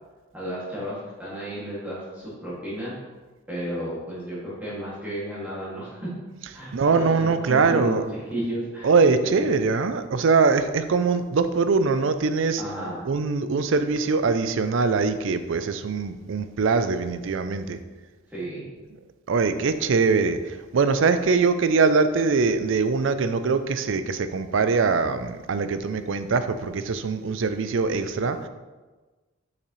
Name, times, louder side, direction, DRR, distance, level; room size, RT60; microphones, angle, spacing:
voice 1, 0.3-2.9 3.5-6.1 6.5-8.0 8.3-8.9 9.2-9.5 12.6-13.1 18.3-18.7, equal, 5° right, -8 dB, 2.2 m, -33 dB
voice 2, 6.7-8.0 8.8-12.6 13.0-17.8 19.3-28.5, right 4 dB, 60° right, 10 dB, 0.4 m, -22 dB
6.6 x 5.8 x 3.1 m, 1.3 s
head